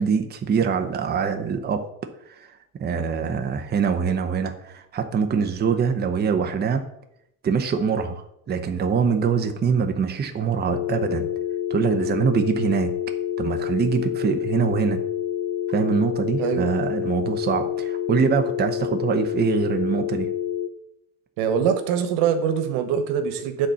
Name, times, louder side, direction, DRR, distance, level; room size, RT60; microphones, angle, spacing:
voice 1, 0.0-1.9 2.3-2.5 2.8-6.9 7.4-11.3 11.7-13.0 13.4-15.0 15.7-20.3, right 6 dB, 25° right, 5 dB, 0.8 m, -24 dB
sound 1, 10.7-20.7, left 10 dB, 85° left, 0.7 m, -28 dB
voice 2, 16.4-16.7 21.4-23.7, right 7 dB, 80° right, 8 dB, 1.4 m, -23 dB
9.1 x 4.3 x 6.8 m, 0.80 s
cardioid pair, 120°, 40 cm